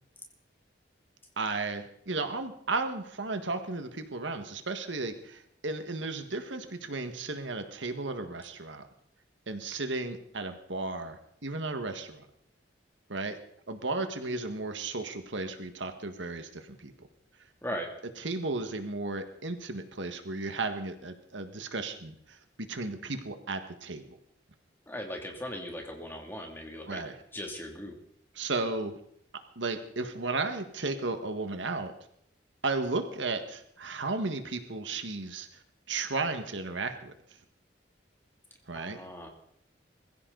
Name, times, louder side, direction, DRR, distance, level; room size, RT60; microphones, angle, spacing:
voice 1, 1.4-8.9 9.5-12.3 13.1-13.4 13.7-17.1 18.2-24.2 26.9-27.2 28.4-29.0 29.6-31.9 32.6-35.5 35.9-37.1 38.7-39.0, right 3 dB, 90° right, 7 dB, 1.7 m, -34 dB
voice 2, 24.9-27.0 27.3-27.9 38.7-39.3, equal, 10° left, 1 dB, 2.7 m, -38 dB
22.0 x 15.0 x 4.0 m, 0.70 s
head